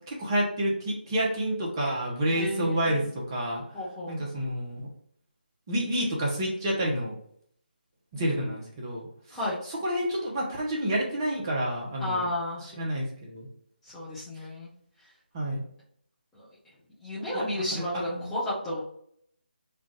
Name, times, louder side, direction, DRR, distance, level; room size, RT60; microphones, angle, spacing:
voice 1, 0.1-3.6 4.1-4.8 5.7-7.1 8.1-9.4 9.7-12.3 12.6-13.5 15.3-15.6 17.3-17.4 17.7-18.3, right 1 dB, 20° right, -3 dB, 0.9 m, -29 dB
voice 2, 2.3-3.0 3.7-4.2 8.2-8.5 9.3-9.6 12.0-12.6 13.8-14.7 16.3-16.5 17.0-18.8, left 1 dB, 5° left, -10 dB, 0.6 m, -32 dB
3.3 x 2.5 x 3.8 m, 0.67 s
figure-of-eight pair, 155°, 6 cm